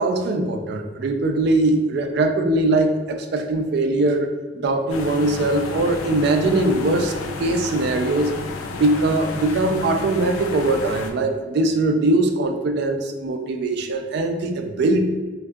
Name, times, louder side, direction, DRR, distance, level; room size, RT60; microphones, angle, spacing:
voice 1, 0.0-4.3 4.5-8.3 8.7-15.0, right 2 dB, 55° right, 5 dB, 0.3 m, -21 dB
sound 1, 4.9-11.1, left 3 dB, 85° left, 0.4 m, -32 dB
3.4 x 2.6 x 2.2 m, 1.3 s
head